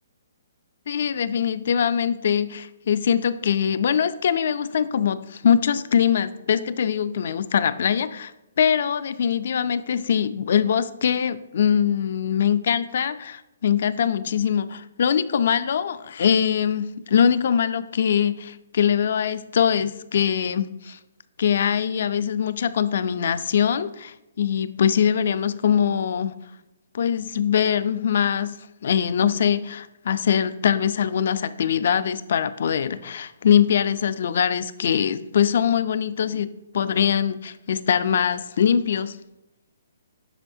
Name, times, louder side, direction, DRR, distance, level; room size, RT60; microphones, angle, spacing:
voice 1, 0.9-8.3 8.6-21.0 21.4-26.3 26.9-28.5 28.8-39.2, left 8 dB, 50° left, 14 dB, 0.4 m, -22 dB
10.0 x 5.9 x 2.7 m, 0.93 s
hypercardioid pair, 165°, 0 cm